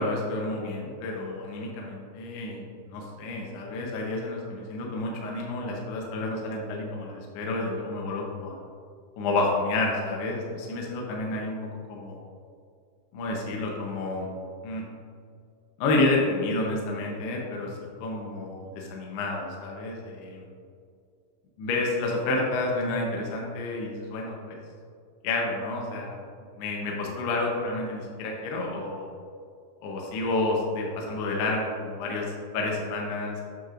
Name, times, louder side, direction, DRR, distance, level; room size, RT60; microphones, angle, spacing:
voice 1, 0.0-8.5 9.2-11.6 11.9-12.2 13.1-14.3 14.6-14.8 15.8-20.5 21.6-24.6 25.2-26.2 26.6-29.1 29.8-32.3 32.5-33.4, left 2 dB, 75° left, -1 dB, 2.4 m, -30 dB
9.1 x 6.4 x 2.5 m, 2.3 s
omnidirectional pair, 5.7 m